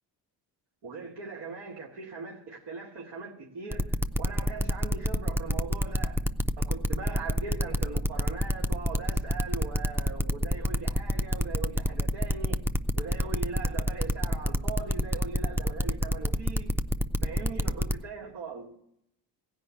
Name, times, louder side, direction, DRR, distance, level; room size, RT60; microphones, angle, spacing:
voice 1, 0.8-6.2 6.6-12.6 12.9-16.7 17.2-18.7, right 4 dB, 85° right, 2.6 m, -40 dB
sound 1, 3.7-17.9, equal, 5° right, 0.4 m, -26 dB
16.0 x 5.4 x 8.7 m
cardioid pair, 95°, 43 cm